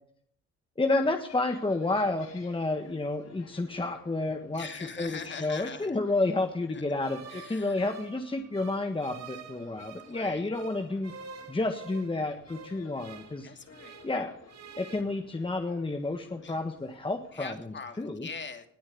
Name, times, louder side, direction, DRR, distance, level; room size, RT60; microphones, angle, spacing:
voice 1, 0.8-11.1 11.5-13.5 14.0-14.4 14.8-18.3, left 2 dB, 15° left, 5 dB, 1.5 m, -30 dB
sound 1, 1.3-17.4, left 4 dB, 55° left, 6.2 m, -56 dB
voice 2, 4.5-6.0 6.7-6.8 7.3-7.9 10.0-10.5 13.4-14.0 16.4-16.6 17.3-18.7, left 5 dB, 40° left, 7 dB, 2.6 m, -42 dB
sound 2, 7.0-10.2 10.5-14.2 14.5-15.0, right 6 dB, 60° right, 2.3 m, -48 dB
20.0 x 8.8 x 7.0 m, 0.64 s
cardioid pair, 90°, 30 cm